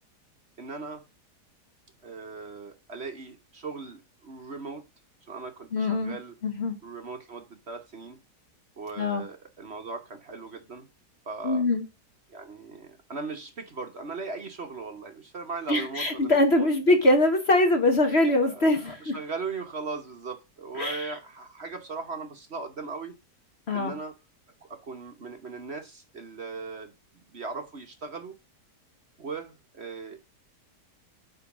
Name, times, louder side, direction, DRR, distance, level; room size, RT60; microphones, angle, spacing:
voice 1, 0.6-1.0 2.0-4.8 5.3-6.3 6.8-8.2 8.8-10.9 11.2-11.6 12.3-16.7 18.5-23.2 23.7-24.1 24.6-28.3 29.2-30.2, right 4 dB, 40° right, 5 dB, 1.3 m, -38 dB
voice 2, 5.7-6.1 6.4-6.8 9.0-9.2 11.4-11.8 15.7-19.1 20.8-21.1 23.7-23.9, left 2 dB, 45° left, 6 dB, 1.2 m, -23 dB
9.4 x 3.9 x 6.0 m, 0.26 s
omnidirectional pair, 1.8 m